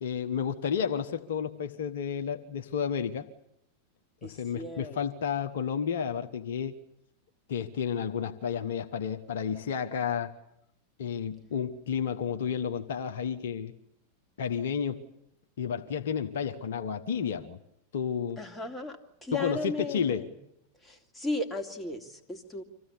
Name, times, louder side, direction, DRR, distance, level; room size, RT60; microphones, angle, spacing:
voice 1, 0.0-3.3 4.2-6.7 7.5-10.3 11.0-13.7 14.4-15.0 15.6-17.6 17.9-18.4 19.3-20.3, left 7 dB, 60° left, 7 dB, 1.1 m, -31 dB
voice 2, 4.2-5.0 18.4-20.3 20.8-22.6, left 2 dB, 10° left, 3 dB, 2.6 m, -35 dB
25.5 x 15.5 x 9.9 m, 0.81 s
figure-of-eight pair, 90°, 0 cm